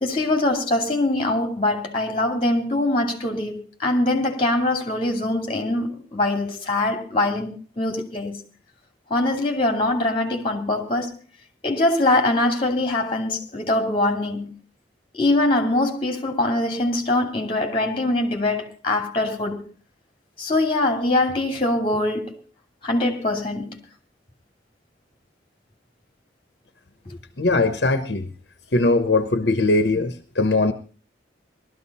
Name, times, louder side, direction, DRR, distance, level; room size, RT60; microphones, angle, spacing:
voice 1, 0.0-8.4 9.1-11.1 11.6-14.5 15.1-19.6 20.4-22.4 22.8-23.8, left 2 dB, 30° left, 2.7 m, -23 dB
voice 2, 27.4-28.3 28.7-30.7, left 2 dB, 65° left, 1.1 m, -20 dB
19.0 x 13.0 x 4.2 m
head